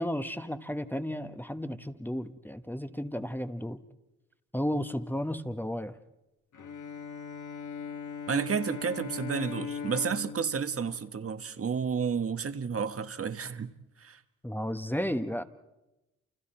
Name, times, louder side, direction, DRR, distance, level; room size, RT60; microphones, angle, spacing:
voice 1, 0.0-3.8 4.5-6.0 14.4-15.4, equal, 5° left, 1.1 m, -33 dB
Bowed string instrument, 6.5-11.9, left 6 dB, 60° left, 1.9 m, -40 dB
voice 2, 8.3-13.7 14.0-14.2, right 6 dB, 45° right, 1.3 m, -31 dB
29.0 x 29.0 x 4.4 m
cardioid pair, 65°, 33 cm